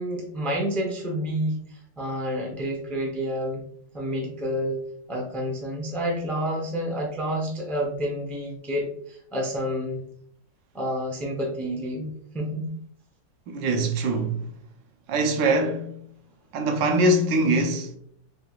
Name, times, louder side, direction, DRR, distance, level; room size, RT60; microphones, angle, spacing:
voice 1, 0.0-3.6 3.9-4.8 5.1-10.0 10.7-12.7, equal, ahead, 0.3 m, -29 dB
voice 2, 13.5-14.4 15.1-16.0 16.5-18.0, right 2 dB, 85° right, 1.4 m, -23 dB
4.4 x 3.7 x 2.4 m
omnidirectional pair, 1.9 m